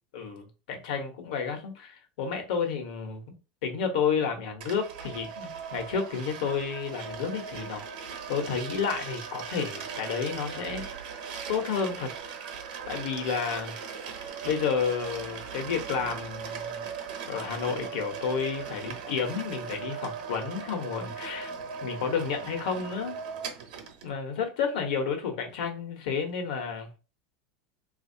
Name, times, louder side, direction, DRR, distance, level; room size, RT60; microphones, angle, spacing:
voice 1, 0.1-3.2 3.6-7.8 8.3-10.9 11.5-12.4 12.9-13.7 14.1-16.8 17.3-21.5 21.8-23.2 24.0-26.9, left 6 dB, 70° left, 1.1 m, -31 dB
sound 1, 4.6-24.1, right 6 dB, 80° right, 0.9 m, -39 dB
3.5 x 2.7 x 2.7 m
supercardioid pair, 175°, 4 cm